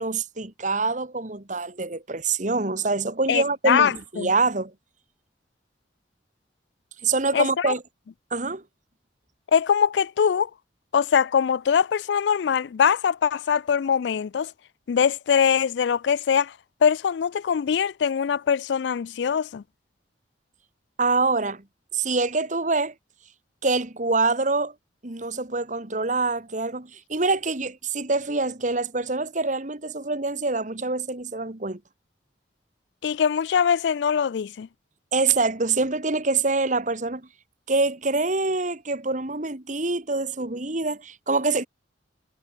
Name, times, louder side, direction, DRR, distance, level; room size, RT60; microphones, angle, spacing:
voice 1, 0.0-4.7 7.0-7.8 8.3-8.6 21.0-21.6 21.9-22.9 23.6-24.7 25.0-31.8 35.1-37.3 37.7-41.7, right 3 dB, 45° right, 1.9 m, -25 dB
voice 2, 3.3-4.3 7.3-7.7 9.5-10.5 10.9-14.5 14.9-16.5 16.8-19.6 33.0-34.7, left 7 dB, 75° left, 0.4 m, -22 dB
head